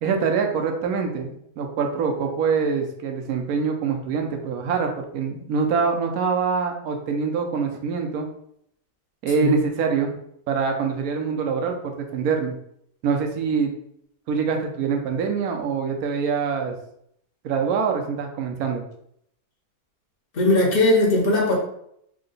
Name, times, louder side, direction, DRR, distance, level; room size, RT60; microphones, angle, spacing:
voice 1, 0.0-8.3 9.2-10.1 10.5-12.6 13.0-13.7 14.3-16.7 17.4-18.8, right 5 dB, 70° right, 4 dB, 1.1 m, -24 dB
voice 2, 20.3-21.5, left 2 dB, 40° left, -2 dB, 0.9 m, -19 dB
3.7 x 2.2 x 3.8 m, 0.72 s
omnidirectional pair, 1.7 m